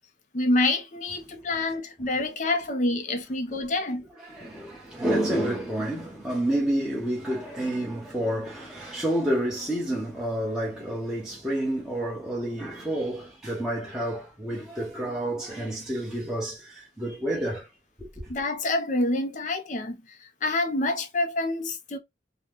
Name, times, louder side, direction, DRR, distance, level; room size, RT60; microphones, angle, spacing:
voice 1, 0.3-4.0 18.3-22.0, left 2 dB, 40° left, 0.6 m, -27 dB
voice 2, 4.2-17.7 18.0-18.3, right 1 dB, 5° right, 0.9 m, -29 dB
2.8 x 2.3 x 3.4 m
head